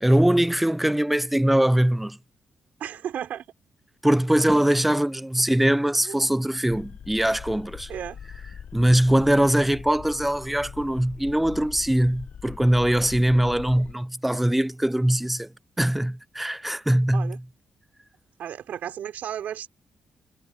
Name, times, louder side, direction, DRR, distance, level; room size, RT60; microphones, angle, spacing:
voice 1, 0.0-2.2 4.0-7.9 8.7-15.5 15.8-17.4, right 1 dB, 5° right, 0.3 m, -22 dB
voice 2, 2.8-3.5 6.1-6.2 7.9-8.2 17.1-17.4 18.4-19.7, right 9 dB, 75° right, 4.0 m, -33 dB
sound 1, 6.7-13.9, left 8 dB, 55° left, 0.8 m, -41 dB
cardioid pair, 125°, 3 cm